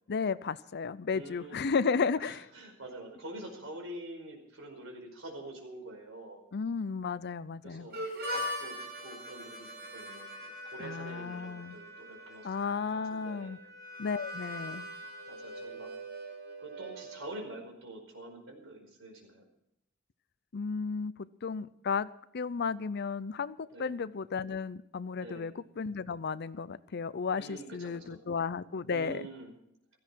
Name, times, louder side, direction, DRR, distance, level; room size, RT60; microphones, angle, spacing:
voice 1, 0.1-2.4 6.5-7.9 10.8-11.8 12.4-13.6 14.0-14.9 20.5-21.1 21.4-22.1 22.3-29.3, left 5 dB, 55° left, 17 dB, 0.6 m, -33 dB
voice 2, 1.1-1.6 2.2-6.4 7.6-8.0 8.3-13.6 14.5-14.8 15.3-15.9 16.6-19.5 23.7-24.0 25.2-25.5 27.4-28.2 28.9-29.5, right 1 dB, 70° right, 3 dB, 4.9 m, -46 dB
Harmonica, 7.9-17.5, equal, 50° right, 5.4 m, -42 dB
16.5 x 14.5 x 4.6 m, 0.78 s
head